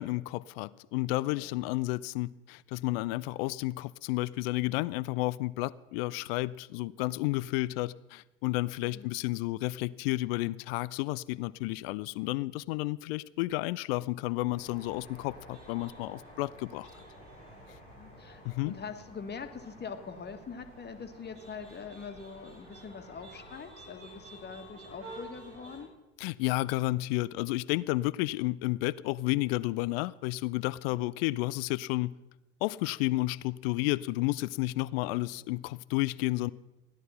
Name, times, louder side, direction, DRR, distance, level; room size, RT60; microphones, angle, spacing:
voice 1, 0.0-16.9 18.4-18.7 26.2-32.1 32.6-36.5, left 19 dB, 55° left, 0.4 m, -31 dB
sound 1, 14.5-25.8, right 1 dB, 80° right, 5.6 m, -50 dB
voice 2, 17.9-25.9 30.9-31.1 35.0-35.2, left 5 dB, 30° left, 1.7 m, -43 dB
15.0 x 11.0 x 5.9 m
figure-of-eight pair, 65°, 36 cm